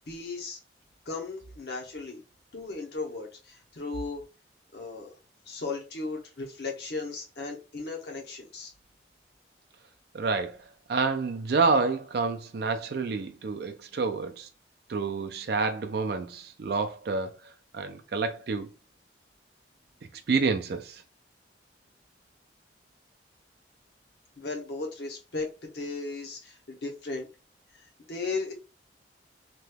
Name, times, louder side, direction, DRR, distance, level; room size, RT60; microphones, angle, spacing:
voice 1, 0.1-0.6 1.1-2.2 2.5-4.2 4.7-5.1 5.5-8.7 24.4-27.3 27.8-28.5, left 3 dB, 60° left, 0.7 m, -36 dB
voice 2, 10.1-14.5 14.9-17.3 17.7-18.7 20.3-21.0, right 4 dB, 55° right, 0.4 m, -28 dB
2.9 x 2.3 x 3.3 m
head